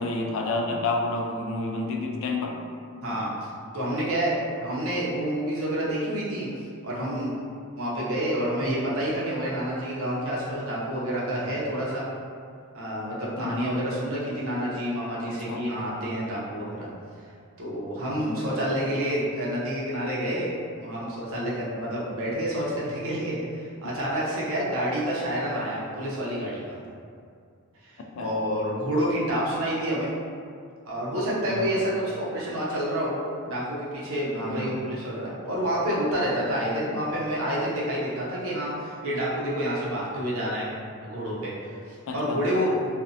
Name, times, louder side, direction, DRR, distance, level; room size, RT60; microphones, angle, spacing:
voice 1, 0.0-2.6 13.4-13.7 15.3-15.6 18.2-18.5 28.1-28.3 31.5-31.7 34.5-34.8 42.1-42.4, left 2 dB, 65° left, 2 dB, 0.3 m, -30 dB
voice 2, 3.0-3.5 3.7-6.5 6.8-7.3 7.8-12.0 12.7-16.9 17.6-20.5 20.8-26.8 27.8-27.9 28.2-30.2 30.9-33.2 33.5-40.7 41.0-42.9, equal, 75° right, -6 dB, 0.6 m, -28 dB
2.5 x 2.0 x 2.6 m, 2.3 s
head